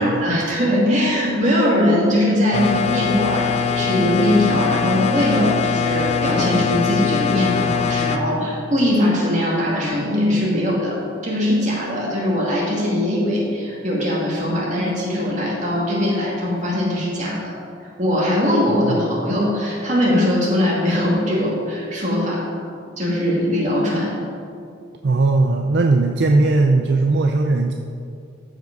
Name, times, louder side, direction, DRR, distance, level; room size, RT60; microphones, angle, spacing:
voice 1, 0.0-11.0 11.2-17.5 18.0-22.5 23.0-24.2, left 1 dB, 40° right, -4 dB, 2.4 m, -20 dB
sound 1, 2.5-8.2, left 6 dB, 35° left, 0.4 m, -22 dB
voice 2, 25.0-27.7, right 3 dB, 60° right, 3 dB, 0.5 m, -18 dB
14.0 x 5.1 x 5.3 m, 2.4 s
head